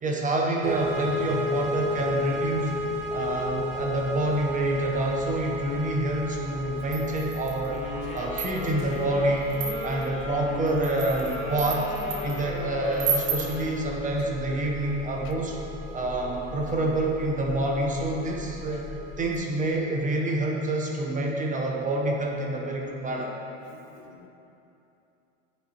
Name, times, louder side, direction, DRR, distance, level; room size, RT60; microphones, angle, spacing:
voice 1, 0.0-2.8 3.1-7.8 8.1-9.6 9.8-11.9 12.2-15.6 15.9-18.9 19.2-23.3, right 1 dB, 20° right, -1 dB, 0.7 m, -27 dB
sound 1, 0.6-19.3, left 1 dB, 45° right, 1.2 m, -35 dB
sound 2, 6.9-7.7 8.2-8.9 9.5-10.1 10.7-12.4 13.0-13.6, right 7 dB, 85° right, 1.0 m, -32 dB
sound 3, 7.7-14.2, left 3 dB, 15° left, 0.7 m, -37 dB
voice 2, 23.7-24.3, left 9 dB, 90° left, 5 dB, 0.5 m, -52 dB
9.3 x 4.5 x 2.8 m, 2.9 s
supercardioid pair, 115°, 38 cm